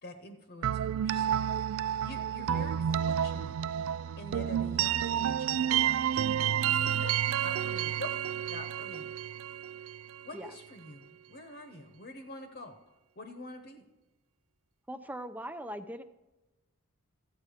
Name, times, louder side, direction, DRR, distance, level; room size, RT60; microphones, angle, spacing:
voice 1, 0.0-1.5 2.0-3.6 4.2-7.1 7.4-8.1 8.5-9.1 10.2-12.7 13.2-13.8, left 1 dB, 50° left, 7 dB, 1.0 m, -46 dB
sound 1, 0.6-10.4, right 9 dB, 65° right, 0.3 m, -30 dB
voice 2, 14.9-16.0, equal, 10° right, 10 dB, 0.5 m, -41 dB
13.5 x 8.7 x 4.9 m, 1.0 s
head